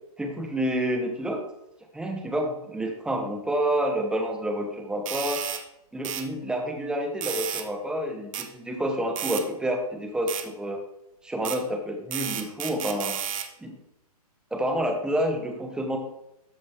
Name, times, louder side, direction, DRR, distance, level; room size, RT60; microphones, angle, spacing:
voice 1, 0.2-1.4 1.9-5.4 5.9-10.8 11.2-13.2 13.6-13.7 14.5-16.0, right 1 dB, 5° right, 4 dB, 1.1 m, -28 dB
sound 1, 5.1-5.6 6.0-6.3 7.2-7.7 8.3-8.5 9.2-9.4 10.3-10.5 11.4-11.6 12.1-13.5, right 9 dB, 60° right, 1.0 m, -32 dB
13.0 x 5.1 x 3.6 m, 0.86 s
hypercardioid pair, 140°, 20 cm